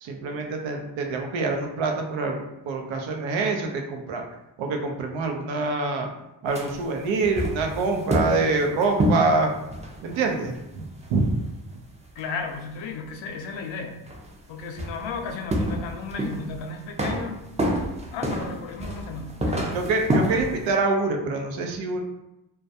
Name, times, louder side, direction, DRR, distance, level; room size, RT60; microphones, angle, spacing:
voice 1, 0.0-4.2 4.6-6.1 6.4-9.5 10.0-10.8 11.1-11.3 19.7-22.0, right 3 dB, 75° right, 3 dB, 0.6 m, -25 dB
sound 1, 6.5-11.5 12.2-12.3 13.1-13.2 14.1-14.3 14.6-16.6 17.0-20.6, equal, 15° right, 0.4 m, -28 dB
voice 2, 12.2-14.0 14.5-17.4 18.1-19.8, left 4 dB, 80° left, 3 dB, 0.5 m, -34 dB
2.3 x 2.1 x 2.7 m, 0.90 s
supercardioid pair, 55°, 46 cm